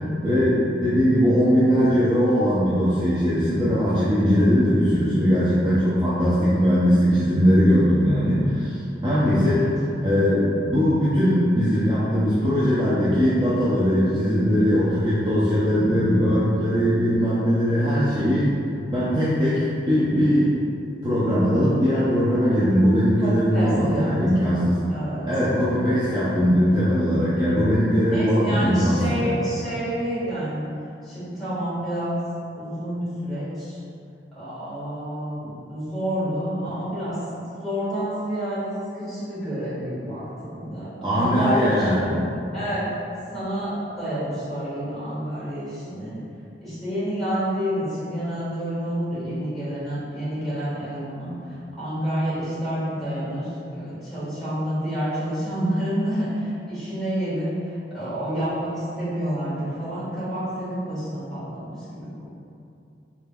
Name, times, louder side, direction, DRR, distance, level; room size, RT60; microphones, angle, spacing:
voice 1, 0.2-18.5 18.9-20.6 21.0-24.8 25.3-29.4 41.0-42.2 42.5-42.6, equal, 25° right, -11 dB, 0.5 m, -20 dB
voice 2, 23.2-24.5 24.9-25.3 28.1-30.6 31.0-32.2 32.6-33.8 34.4-37.2 37.6-42.1 42.5-42.9 43.3-46.2 46.6-51.3 51.8-62.2, equal, ahead, -13 dB, 1.4 m, -29 dB
3.8 x 3.4 x 2.2 m, 2.5 s
head